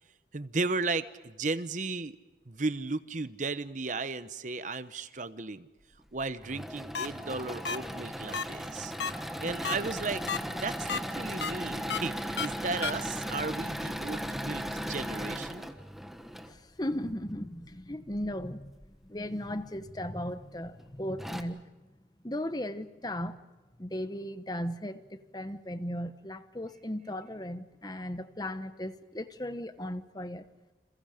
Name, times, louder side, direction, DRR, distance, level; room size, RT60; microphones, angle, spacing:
voice 1, 0.3-2.2 2.5-5.7 6.1-8.9 9.4-15.7, right 3 dB, 45° right, 0.9 m, -35 dB
Engine / Mechanisms, 6.2-16.5 18.1-18.9 19.5-19.6 19.9-20.0 20.8-20.9 21.2-21.4, equal, ahead, 1.4 m, -37 dB
sound 1, 6.9-7.1 7.7-7.8 8.3-8.4 9.0-9.1 9.6-9.8 10.3-10.4 10.9-11.0 11.4-11.5 11.9-12.0 12.4-12.5 12.8-12.9, left 6 dB, 75° left, 1.2 m, -31 dB
voice 2, 16.5-18.7 19.1-21.7 22.2-23.4 23.8-30.4, left 1 dB, 20° left, 1.1 m, -36 dB
30.0 x 28.0 x 5.2 m
head